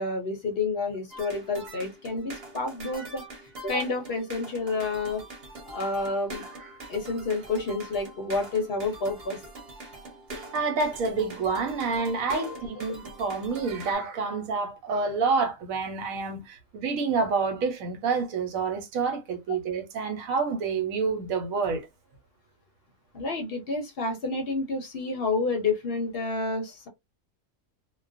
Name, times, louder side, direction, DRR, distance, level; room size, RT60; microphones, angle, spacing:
voice 1, 0.0-3.2 3.6-5.2 5.7-6.5 6.9-9.4 12.4-12.6 23.1-26.9, left 3 dB, 55° left, 0.7 m, -29 dB
sound 1, 1.1-13.9, right 2 dB, 50° right, 1.0 m, -43 dB
voice 2, 10.3-21.8, right 4 dB, 85° right, 1.1 m, -28 dB
2.3 x 2.2 x 2.4 m
omnidirectional pair, 1.4 m